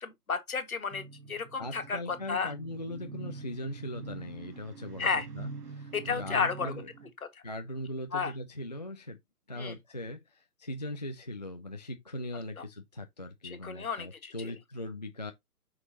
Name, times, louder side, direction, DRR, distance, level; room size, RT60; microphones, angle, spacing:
voice 1, 0.0-2.5 5.0-5.3 5.9-6.7 7.3-7.4 8.1-8.3 9.6-9.8 13.4-14.5, left 5 dB, 60° left, 1.9 m, -32 dB
sound 1, 0.9-7.1, right 4 dB, 75° right, 1.5 m, -45 dB
voice 2, 1.6-6.9 7.4-9.2 9.5-15.3, left 1 dB, 30° left, 0.5 m, -40 dB
6.1 x 6.1 x 2.8 m
figure-of-eight pair, 135°, 48 cm